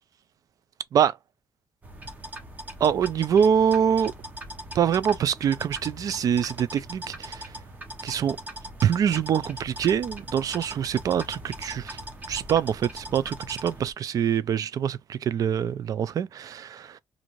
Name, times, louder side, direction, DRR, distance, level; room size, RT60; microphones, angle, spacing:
sound 1, 1.8-13.9, right 1 dB, 20° right, 0.9 m, -40 dB
voice 1, 2.8-4.1 4.7-7.5 8.0-8.4 8.8-12.0 12.3-17.0, right 8 dB, 50° right, 0.4 m, -24 dB
2.6 x 2.5 x 3.0 m
cardioid pair, 125°, 8 cm